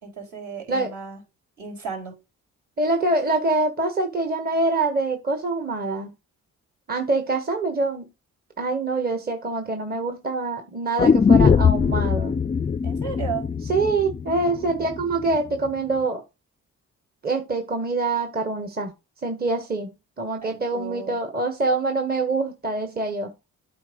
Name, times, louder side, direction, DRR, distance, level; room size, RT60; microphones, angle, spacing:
voice 1, 0.0-1.2 1.6-2.1 12.8-13.5 20.4-21.2, right 7 dB, 70° right, 0 dB, 4.7 m, -34 dB
voice 2, 2.8-6.1 6.9-8.1 8.6-12.3 13.7-16.2 17.2-18.9 19.2-23.3, right 3 dB, 30° right, 5 dB, 1.2 m, -25 dB
sound 1, 11.0-15.0 15.3-15.4, left 6 dB, 20° left, 0.3 m, -20 dB
8.4 x 4.2 x 5.2 m, 0.27 s
cardioid pair, 90°, 30 cm